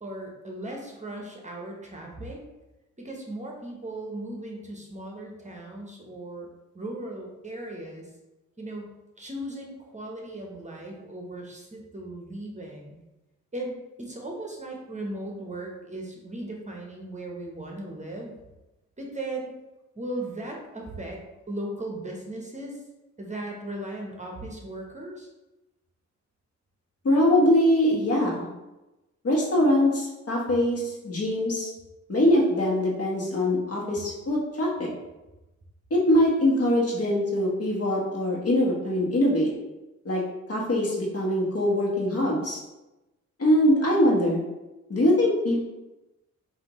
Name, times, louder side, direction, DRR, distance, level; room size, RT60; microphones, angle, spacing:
voice 1, 0.0-2.4 3.0-6.5 6.7-8.0 8.6-13.0 13.5-18.3 19.0-19.5 20.0-21.2 21.5-22.8 23.2-25.3, right 1 dB, 25° right, -1 dB, 0.9 m, -37 dB
voice 2, 27.0-28.5 29.2-31.7 32.1-34.9 35.9-39.5 40.0-40.2 40.5-42.6 43.4-44.4 44.9-45.6, left 1 dB, 50° left, -3 dB, 1.3 m, -23 dB
4.9 x 2.7 x 3.1 m, 1.0 s
cardioid pair, 60°, 31 cm